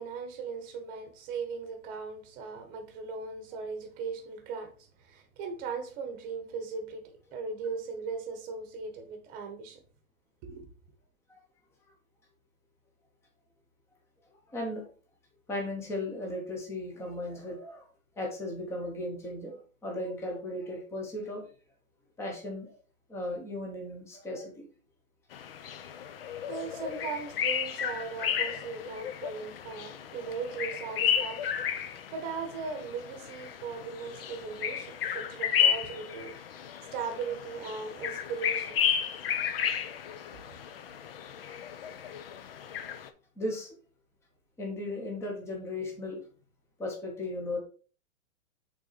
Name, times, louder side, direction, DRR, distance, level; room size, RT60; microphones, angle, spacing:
voice 1, 0.0-4.7 5.0-7.0 7.3-9.8 10.4-10.6 26.5-31.6 31.8-36.3 36.9-38.8, right 5 dB, 20° right, 1.1 m, -38 dB
voice 2, 14.5-14.9 15.5-17.9 18.2-21.5 22.2-22.8 23.1-24.7 43.4-43.8 44.6-46.2 46.8-47.6, left 1 dB, 5° left, 0.8 m, -36 dB
sound 1, 25.3-43.1, left 8 dB, 45° left, 0.6 m, -33 dB
6.1 x 3.9 x 4.1 m
hypercardioid pair, 160°, 42 cm